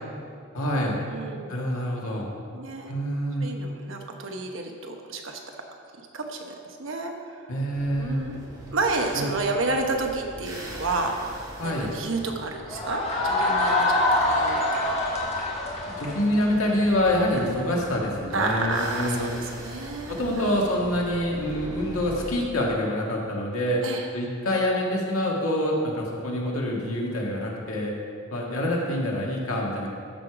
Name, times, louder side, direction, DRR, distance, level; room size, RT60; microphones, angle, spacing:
voice 1, 0.5-1.0 1.5-2.3 2.9-3.5 7.5-8.2 9.1-9.3 11.6-11.9 16.0-19.3 20.1-23.8 24.1-27.9 28.3-29.9, left 1 dB, 85° left, -2 dB, 1.8 m, -26 dB
voice 2, 1.1-1.5 2.5-2.9 3.4-5.4 6.1-7.1 8.0-8.4 8.7-13.9 14.1-14.6 18.3-20.6 23.8-24.1, right 3 dB, 70° right, 3 dB, 1.0 m, -30 dB
sound 1, 7.7-22.3, equal, 20° right, 1.4 m, -42 dB
sound 2, 12.7-17.4, left 2 dB, 30° left, 1.5 m, -25 dB
13.5 x 5.0 x 5.0 m, 2.4 s
head